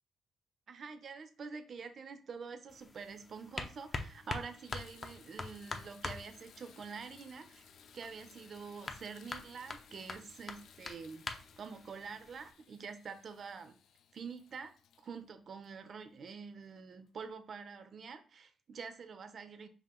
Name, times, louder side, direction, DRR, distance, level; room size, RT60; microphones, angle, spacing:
voice 1, 0.7-7.6 7.9-11.2 11.6-13.8 14.1-14.7 15.0-19.7, right 5 dB, 50° right, 9 dB, 0.6 m, -46 dB
sound 1, 2.7-12.5, left 3 dB, 30° left, 0.7 m, -46 dB
Water tap faucet / Bathtub (filling or washing), 3.4-3.5 4.0-16.4 17.1-17.2 17.7-17.8, left 8 dB, 75° left, 0.4 m, -62 dB
5.6 x 2.5 x 3.7 m, 0.36 s
cardioid pair, 90°, 0 cm